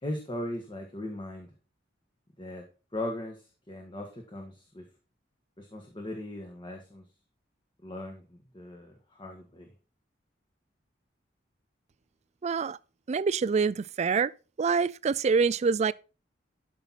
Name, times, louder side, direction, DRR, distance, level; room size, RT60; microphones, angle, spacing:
voice 1, 0.0-1.5 2.4-2.6 2.9-4.8 5.6-7.0 7.8-9.7, left 1 dB, 25° left, 1.6 m, -38 dB
voice 2, 12.4-12.8 13.1-14.3 14.6-15.9, right 5 dB, 40° right, 0.3 m, -26 dB
12.0 x 5.9 x 4.2 m
head